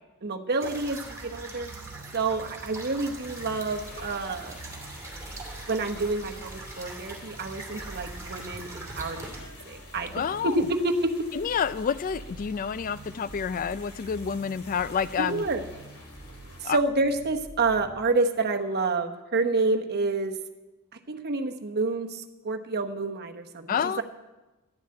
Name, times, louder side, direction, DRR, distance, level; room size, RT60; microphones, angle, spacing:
voice 1, 0.2-1.7 2.1-4.5 5.7-11.1 15.2-15.6 16.6-20.3 21.1-24.0, right 3 dB, 45° right, 5 dB, 1.0 m, -28 dB
sound 1, 0.6-9.4, right 2 dB, 15° right, 2.4 m, -42 dB
sound 2, 1.6-18.1, right 3 dB, 30° right, 0.5 m, -47 dB
sound 3, 3.2-16.7, left 3 dB, 70° left, 2.9 m, -49 dB
voice 2, 10.1-10.6 11.3-15.4 16.6-16.8 23.7-24.0, left 7 dB, 40° left, 16 dB, 0.3 m, -29 dB
12.0 x 7.2 x 8.7 m, 1.1 s
head